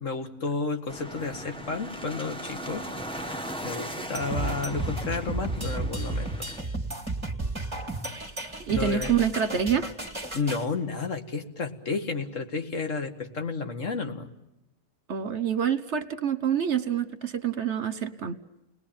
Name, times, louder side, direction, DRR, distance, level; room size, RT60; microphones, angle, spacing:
voice 1, 0.0-2.9 3.3-6.5 8.7-9.1 10.3-14.3, left 4 dB, 75° left, 6 dB, 2.2 m, -32 dB
sound 1, 0.9-6.6, equal, 5° left, 1.5 m, -38 dB
sound 2, 4.1-10.6, right 2 dB, 20° right, 2.4 m, -33 dB
voice 2, 8.6-9.9 15.1-18.4, right 8 dB, 60° right, 13 dB, 1.5 m, -26 dB
29.5 x 20.5 x 8.8 m, 0.95 s
omnidirectional pair, 1.3 m